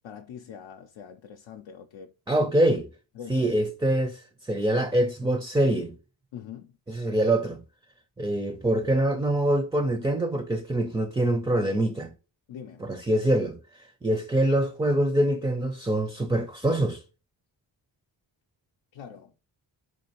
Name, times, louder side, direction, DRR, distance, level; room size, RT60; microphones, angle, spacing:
voice 1, 0.0-2.1 3.2-3.5 6.3-6.7 12.5-12.9 18.9-19.3, left 8 dB, 80° left, 0.5 m, -43 dB
voice 2, 2.3-2.9 3.3-6.0 6.9-7.6 8.2-12.1 12.8-13.6 14.0-17.0, right 1 dB, 10° right, 0.4 m, -24 dB
4.2 x 2.4 x 2.9 m
cardioid pair, 75°, 46 cm